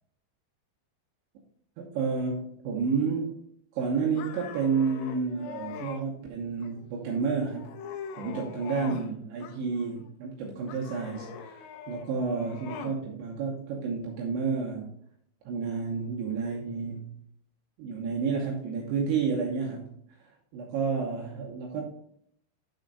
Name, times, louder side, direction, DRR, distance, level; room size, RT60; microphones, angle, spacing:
voice 1, 1.8-3.3 3.7-7.7 8.2-11.5 11.9-14.9 15.5-17.1 17.8-19.9 20.5-21.8, right 5 dB, 75° right, -2 dB, 3.2 m, -30 dB
sound 1, 4.1-6.0 6.6-7.1 7.5-9.1 9.4-10.1 10.7-13.0, left 7 dB, 80° left, 2.9 m, -42 dB
9.6 x 4.3 x 3.9 m, 0.68 s
omnidirectional pair, 5.6 m